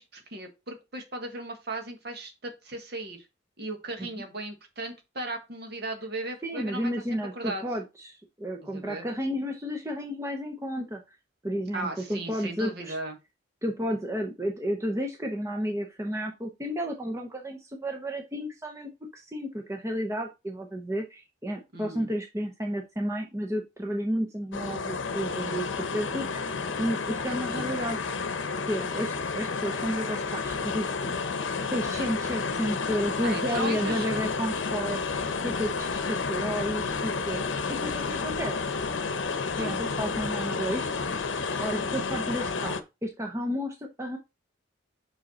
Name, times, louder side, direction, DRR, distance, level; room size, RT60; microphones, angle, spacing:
voice 1, 0.0-3.3 3.6-6.9 7.3-7.6 8.6-9.1 11.7-13.2 21.7-22.1 27.5-27.7 33.2-34.2 39.5-39.8, right 2 dB, 55° right, 5 dB, 1.5 m, -36 dB
voice 2, 6.4-11.2 11.4-12.9 13.6-25.7 25.9-28.0 28.7-37.4 37.7-38.6 39.5-41.3 41.6-44.2, equal, 15° right, 2 dB, 0.8 m, -32 dB
sound 1, 24.5-42.8, left 4 dB, 75° left, 0.8 m, -31 dB
5.6 x 5.2 x 4.2 m, 0.25 s
head